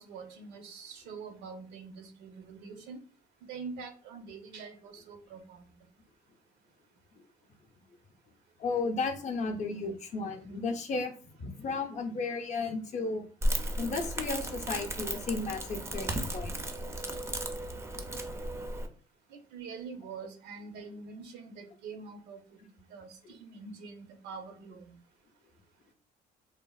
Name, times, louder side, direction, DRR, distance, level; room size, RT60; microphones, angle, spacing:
voice 1, 0.0-3.0 3.5-5.8 19.3-22.6 22.9-24.9, right 5 dB, 80° right, 6 dB, 0.6 m, -45 dB
voice 2, 8.6-11.1 11.4-13.3 13.8-16.5, left 3 dB, 45° left, 5 dB, 0.5 m, -34 dB
Crackle, 13.4-18.9, right 1 dB, 15° right, 0.4 m, -35 dB
3.3 x 2.0 x 2.2 m, 0.42 s
cardioid pair, 110°, 17 cm